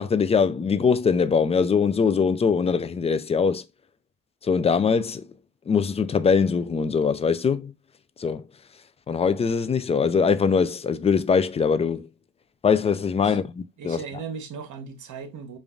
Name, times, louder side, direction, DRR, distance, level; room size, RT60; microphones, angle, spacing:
voice 1, 0.0-3.6 4.4-5.3 5.7-7.7 8.2-8.4 9.1-12.1 12.6-14.0, left 5 dB, 20° left, 0.3 m, -22 dB
voice 2, 13.8-15.6, right 6 dB, 55° right, 1.2 m, -37 dB
5.1 x 2.5 x 2.4 m
supercardioid pair, 90°, 35 cm